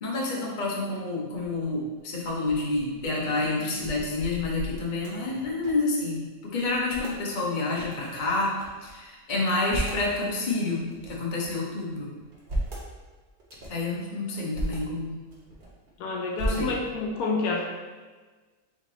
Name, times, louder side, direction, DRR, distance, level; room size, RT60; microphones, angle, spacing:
voice 1, 0.0-8.5 8.8-12.1 13.7-15.1 16.5-16.7, left 2 dB, 40° left, -3 dB, 0.8 m, -29 dB
sound 1, 1.4-1.7 2.2-6.0 6.2-6.3 6.6-7.2 7.9-8.9 9.4-10.1 10.7-11.6 12.2-12.9 13.4-13.9 14.3-14.8 15.3-15.9 16.3-17.1, right 1 dB, 45° right, 0.8 m, -36 dB
voice 2, 16.0-17.7, left 3 dB, 80° left, 0 dB, 1.1 m, -28 dB
3.7 x 3.3 x 3.8 m, 1.4 s
omnidirectional pair, 1.5 m